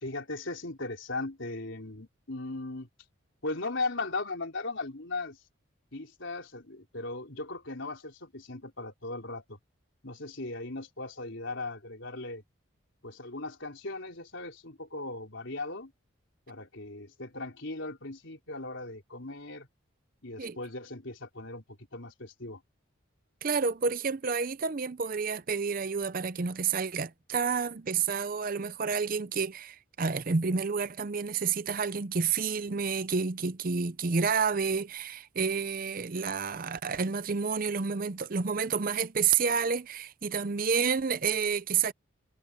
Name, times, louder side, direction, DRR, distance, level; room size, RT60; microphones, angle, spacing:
voice 1, 0.0-2.9 3.4-5.4 5.9-9.6 10.0-12.4 13.0-15.9 16.5-19.7 20.2-22.6, left 2 dB, 65° left, 3.9 m, -38 dB
voice 2, 23.4-41.9, right 5 dB, 45° right, 0.6 m, -29 dB
head